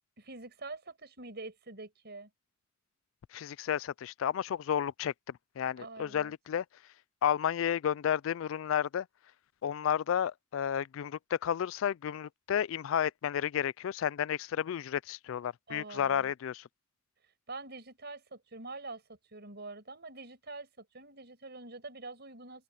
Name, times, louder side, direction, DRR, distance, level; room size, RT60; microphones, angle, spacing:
voice 1, 0.2-2.3 5.8-6.3 15.7-16.3 17.5-22.6, right 3 dB, 55° right, 5.9 m, -45 dB
voice 2, 3.3-6.6 7.2-9.1 9.6-16.7, left 9 dB, 65° left, 0.3 m, -32 dB
open air
head